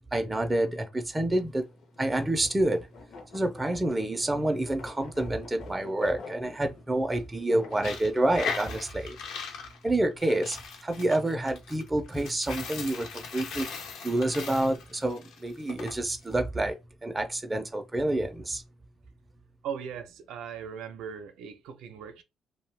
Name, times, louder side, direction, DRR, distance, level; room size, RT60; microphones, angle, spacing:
voice 1, 0.1-1.6 2.0-2.9 3.3-9.2 9.8-13.7 14.0-16.8 17.0-18.6, right 1 dB, 10° right, 0.4 m, -28 dB
sound 1, 1.2-8.0, left 4 dB, 55° left, 0.6 m, -48 dB
Coin (dropping), 7.7-15.9, left 5 dB, 90° left, 0.9 m, -39 dB
voice 2, 19.6-22.2, right 7 dB, 85° right, 0.5 m, -39 dB
2.6 x 2.1 x 3.1 m
cardioid pair, 155°, 0 cm